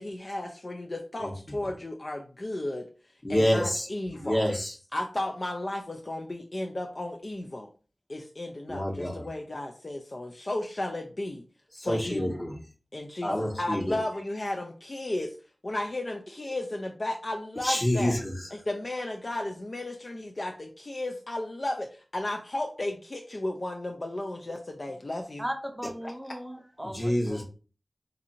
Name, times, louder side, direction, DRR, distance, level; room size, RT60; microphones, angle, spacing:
voice 1, 0.0-2.9 3.3-4.4 4.9-7.7 8.1-11.4 11.8-12.4 12.9-15.4 15.6-18.2 18.5-25.5 26.0-26.1, left 1 dB, 50° left, 0.4 m, -34 dB
voice 2, 3.2-3.9 4.1-4.7 8.7-9.2 11.8-12.5 13.2-14.0 17.6-18.3 26.9-27.4, equal, 30° left, 1.2 m, -27 dB
voice 3, 25.4-27.4, equal, 10° right, 0.6 m, -37 dB
2.6 x 2.6 x 4.2 m
wide cardioid pair, 55°, 0 cm